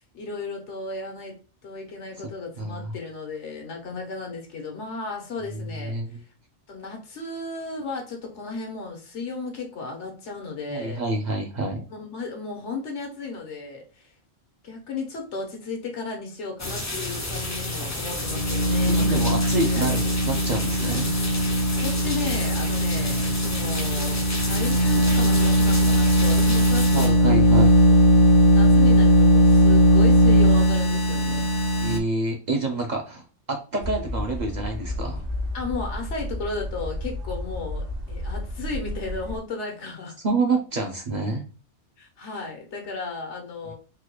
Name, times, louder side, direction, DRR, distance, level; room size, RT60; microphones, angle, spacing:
voice 1, 0.1-1.4 1.6-6.0 6.7-11.0 11.9-14.1 14.6-19.3 19.6-20.2 21.7-28.0 28.5-31.5 35.5-40.2 42.0-43.7, left 3 dB, 85° left, 1 dB, 1.3 m, -34 dB
voice 2, 2.6-3.0 5.5-6.2 10.7-11.9 17.8-17.9 18.9-21.1 26.9-27.7 31.8-35.3 40.2-41.4, right 2 dB, 50° right, 2 dB, 0.6 m, -28 dB
sound 1, 16.6-27.1, left 1 dB, 25° left, 0.3 m, -31 dB
sound 2, 18.1-32.0, equal, 60° left, 0.7 m, -19 dB
sound 3, 33.8-39.4, left 1 dB, 75° right, 1.1 m, -32 dB
3.9 x 2.2 x 2.9 m, 0.36 s
omnidirectional pair, 1.2 m